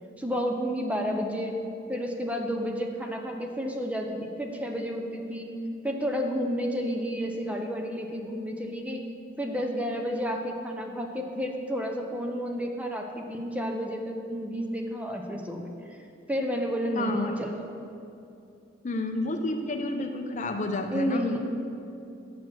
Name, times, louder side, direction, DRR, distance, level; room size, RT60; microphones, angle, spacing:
voice 1, 0.2-1.6 1.9-5.5 5.8-9.0 9.4-16.0 16.3-17.7 20.9-21.4, equal, 10° right, 2 dB, 0.6 m, -31 dB
voice 2, 16.9-17.4 18.8-21.4, left 2 dB, 40° left, 5 dB, 0.6 m, -30 dB
7.8 x 6.0 x 6.3 m, 2.6 s
head